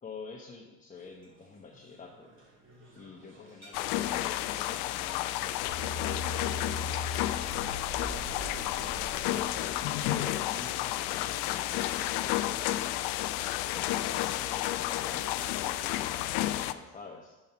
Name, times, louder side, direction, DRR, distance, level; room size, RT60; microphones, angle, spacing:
voice 1, 0.0-2.3 2.9-8.7 9.3-12.9 13.7-17.4, left 4 dB, 15° left, 0 dB, 1.0 m, -48 dB
sound 1, 0.9-11.3, right 1 dB, 25° right, 2.6 m, -59 dB
sound 2, 3.7-16.7, left 14 dB, 60° left, 0.6 m, -31 dB
sound 3, 5.7-10.6, left 2 dB, 60° right, 2.8 m, -40 dB
7.2 x 5.5 x 5.9 m, 1.1 s
hypercardioid pair, 85°, 45 cm